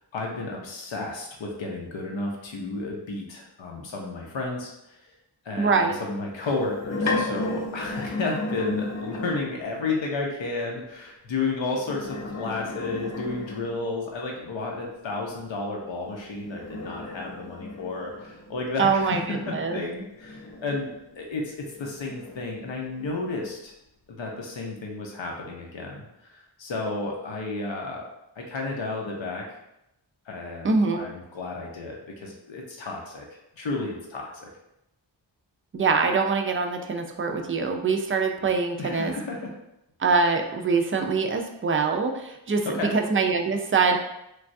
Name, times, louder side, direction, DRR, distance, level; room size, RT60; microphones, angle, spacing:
voice 1, 0.1-5.0 5.4-19.2 19.5-23.7 24.1-28.0 28.4-29.5 30.3-33.2 33.6-34.5 38.8-39.5 42.8-42.9, left 3 dB, 80° left, -1 dB, 0.7 m, -32 dB
voice 2, 5.6-6.0 18.8-19.8 30.6-31.1 35.7-39.1 40.0-44.0, right 4 dB, 30° right, 4 dB, 0.4 m, -24 dB
sound 1, 6.4-9.8 11.7-14.1 16.0-21.2 21.7-23.5, left 2 dB, 40° left, 0.5 m, -34 dB
3.3 x 2.3 x 2.6 m, 0.84 s
cardioid pair, 45°, 45 cm